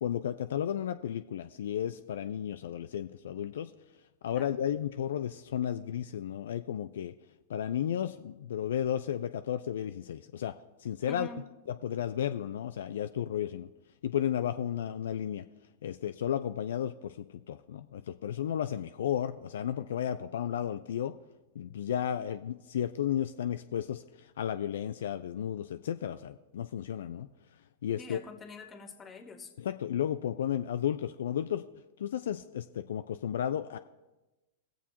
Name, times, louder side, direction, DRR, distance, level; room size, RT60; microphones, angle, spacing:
voice 1, 0.0-3.7 4.2-7.2 7.5-10.5 10.8-11.3 11.8-13.7 14.0-15.5 15.8-21.2 21.6-27.3 27.8-28.2 29.6-31.7 32.0-33.8, left 10 dB, 75° left, 9 dB, 0.3 m, -33 dB
voice 2, 11.1-11.5 28.0-29.5, left 2 dB, 25° left, 5 dB, 1.4 m, -45 dB
18.5 x 7.3 x 2.8 m, 1.1 s
hypercardioid pair, 105°, 0 cm